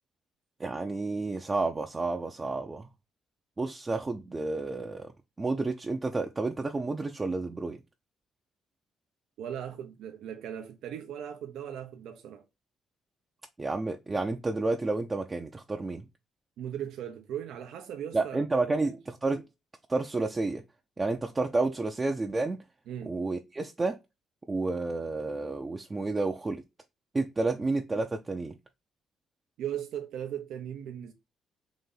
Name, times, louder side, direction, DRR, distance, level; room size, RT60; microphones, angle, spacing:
voice 1, 0.6-2.9 3.6-5.1 5.4-7.8 13.6-16.0 18.1-18.9 19.2-19.4 19.9-20.6 21.0-22.6 23.1-24.0 24.5-26.6 27.1-28.5, right 3 dB, 25° right, 0.5 m, -30 dB
voice 2, 9.4-12.4 16.6-18.4 18.7-19.0 22.9-23.2 29.6-31.1, right 10 dB, 85° right, 0.6 m, -38 dB
4.0 x 2.6 x 3.8 m
cardioid pair, 90°, 0 cm